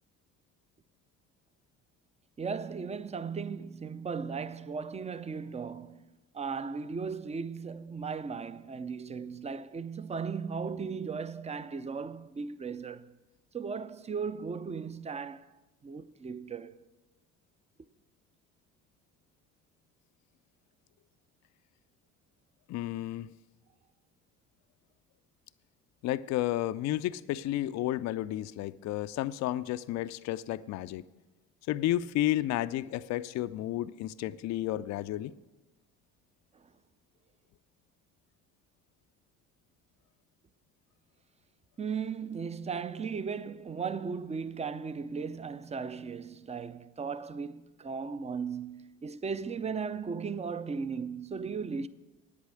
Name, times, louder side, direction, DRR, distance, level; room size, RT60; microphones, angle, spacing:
voice 1, 2.4-13.1 13.5-16.8 36.5-36.7 41.8-51.9, right 5 dB, 15° right, 0.5 m, -37 dB
voice 2, 22.7-23.3 26.0-31.0 31.7-35.3, left 14 dB, 45° left, 0.4 m, -32 dB
9.4 x 8.4 x 6.5 m
hypercardioid pair, 55°, 40 cm